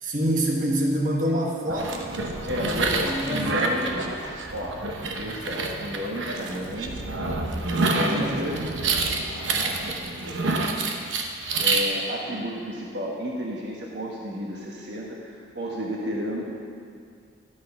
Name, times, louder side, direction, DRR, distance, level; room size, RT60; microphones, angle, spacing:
voice 1, 0.0-2.3 3.0-3.7 7.9-8.4, right 1 dB, 45° right, 0 dB, 1.3 m, -26 dB
sound 1, 1.7-11.8, right 3 dB, 85° right, 1.0 m, -28 dB
voice 2, 2.5-4.0 4.5-4.8 5.1-6.9 7.8-8.6 9.5-10.7 11.6-16.5, equal, 65° right, -3 dB, 1.3 m, -32 dB
12.5 x 6.3 x 5.9 m, 2.2 s
head